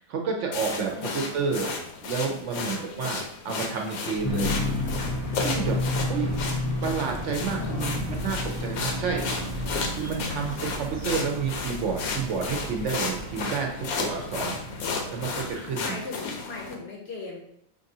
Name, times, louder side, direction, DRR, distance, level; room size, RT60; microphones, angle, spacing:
voice 1, 0.1-1.7 2.0-4.5 5.3-5.8 6.1-6.3 6.8-9.2 9.9-14.6 15.1-16.0, right 5 dB, 65° right, 2 dB, 0.8 m, -30 dB
sound 1, 0.5-16.7, left 4 dB, 80° left, 1.1 m, -34 dB
voice 2, 0.9-1.4 2.5-2.9 7.5-8.0 15.8-17.4, left 3 dB, 60° left, -1 dB, 0.7 m, -39 dB
sound 2, 4.1-13.4, right 2 dB, 85° right, 0.4 m, -39 dB
sound 3, 4.2-15.6, left 2 dB, 35° left, 0.4 m, -33 dB
5.2 x 2.5 x 2.7 m, 0.73 s
omnidirectional pair, 1.5 m